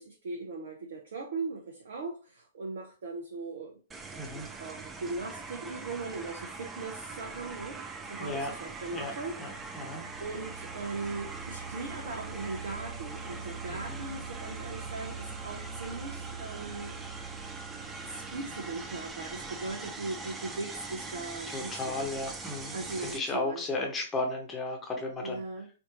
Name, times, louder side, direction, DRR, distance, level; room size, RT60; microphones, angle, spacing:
voice 1, 0.0-3.8 4.1-7.8 8.1-9.9 10.2-16.9 17.4-17.5 18.0-22.1 22.7-23.6 25.0-25.7, right 3 dB, 60° right, 1 dB, 0.7 m, -39 dB
sound 1, 3.9-23.2, right 3 dB, 15° right, 0.5 m, -42 dB
voice 2, 8.2-8.5 8.9-9.1 9.4-10.0 13.7-14.0 21.5-25.4, left 2 dB, 15° left, 2 dB, 1.1 m, -34 dB
sound 2, 9.1-19.1, right 5 dB, 90° left, 0.8 m, -44 dB
4.4 x 2.6 x 2.9 m, 0.34 s
figure-of-eight pair, 110°, 0 cm